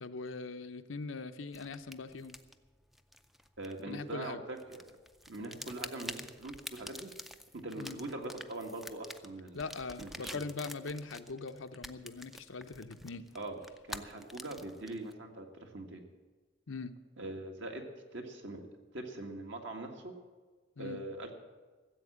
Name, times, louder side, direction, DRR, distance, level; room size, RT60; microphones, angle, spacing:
voice 1, 0.0-2.4 3.8-4.4 7.8-8.0 9.5-13.3 16.7-16.9 20.8-21.0, left 4 dB, 90° left, 8 dB, 0.8 m, -41 dB
sound 1, 1.5-4.2 4.6-15.1, equal, ahead, 0.4 m, -48 dB
voice 2, 3.6-4.8 5.3-7.1 7.6-9.6 10.0-10.4 13.4-13.6 13.9-16.0 17.2-18.7 18.9-20.1 20.8-21.3, right 2 dB, 65° right, 3 dB, 1.9 m, -42 dB
15.0 x 7.9 x 8.6 m, 1.4 s
head